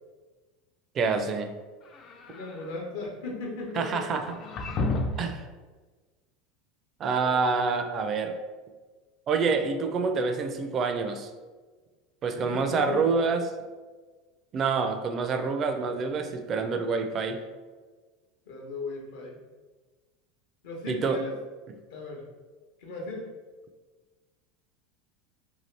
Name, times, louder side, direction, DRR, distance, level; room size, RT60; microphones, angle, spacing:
voice 1, 0.9-1.5 3.8-4.4 5.2-5.5 7.0-8.4 9.3-11.3 12.2-13.5 14.5-17.4 20.9-21.2 21.7-21.8, right 4 dB, 40° right, 7 dB, 0.4 m, -27 dB
sound 1, 1.8-2.7 4.1-5.4, left 2 dB, 45° left, 0.4 m, -32 dB
voice 2, 2.3-4.2 7.1-7.4 12.3-13.1 18.5-19.4 20.6-21.3 21.9-22.2 22.8-23.3, left 2 dB, 75° left, -1 dB, 0.8 m, -37 dB
2.7 x 2.4 x 3.2 m, 1.3 s
hypercardioid pair, 95°, 0 cm